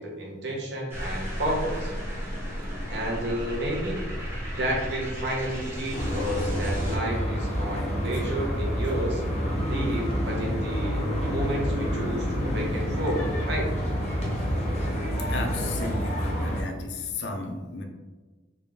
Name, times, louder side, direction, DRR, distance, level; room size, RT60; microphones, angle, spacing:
voice 1, 0.0-1.9 2.9-4.0 4.5-9.2 9.6-13.7, right 1 dB, 60° right, -1 dB, 0.8 m, -31 dB
sound 1, 0.9-7.0, equal, 15° right, 0.9 m, -34 dB
sound 2, 5.9-16.6, equal, 35° left, 0.8 m, -28 dB
voice 2, 15.2-17.8, left 3 dB, 70° left, 3 dB, 0.5 m, -33 dB
3.5 x 2.5 x 3.4 m, 1.3 s
head